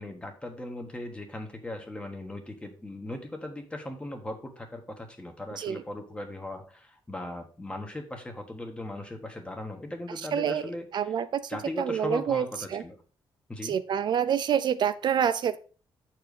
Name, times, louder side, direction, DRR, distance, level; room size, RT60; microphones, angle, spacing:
voice 1, 0.0-11.1 11.5-13.0 13.5-13.7, left 1 dB, 15° left, 4 dB, 1.4 m, -38 dB
voice 2, 10.3-10.6 10.9-11.5 11.8-12.5 12.7-12.8 13.6-15.6, right 8 dB, 60° right, 12 dB, 0.4 m, -27 dB
7.9 x 4.5 x 5.1 m, 0.38 s
wide cardioid pair, 145°, 9 cm